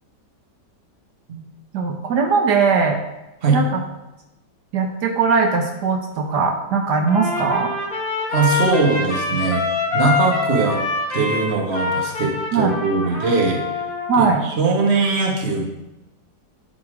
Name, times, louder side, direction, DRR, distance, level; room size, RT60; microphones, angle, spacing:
voice 1, 1.7-3.0 3.5-3.6 4.7-7.7 12.5-12.7 14.1-14.4, right 5 dB, 70° right, 2 dB, 1.4 m, -19 dB
Trumpet, 7.1-14.2, left 3 dB, 30° left, 1.7 m, -25 dB
voice 2, 8.3-9.6 9.9-10.8 11.1-13.6 14.2-15.7, right 3 dB, 40° right, 0 dB, 1.5 m, -20 dB
11.5 x 4.4 x 4.8 m, 0.97 s
omnidirectional pair, 1.9 m